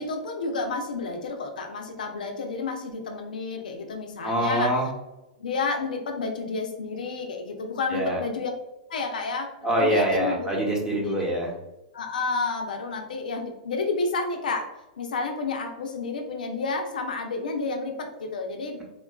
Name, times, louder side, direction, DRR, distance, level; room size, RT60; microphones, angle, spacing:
voice 1, 0.0-4.7 5.4-8.5 8.9-10.5 11.0-11.2 11.9-18.8, left 3 dB, 80° left, 3 dB, 0.5 m, -30 dB
voice 2, 4.2-4.9 7.9-8.2 9.6-11.5, right 1 dB, 15° right, -2 dB, 0.9 m, -24 dB
3.6 x 2.3 x 2.2 m, 0.97 s
hypercardioid pair, 115°, 4 cm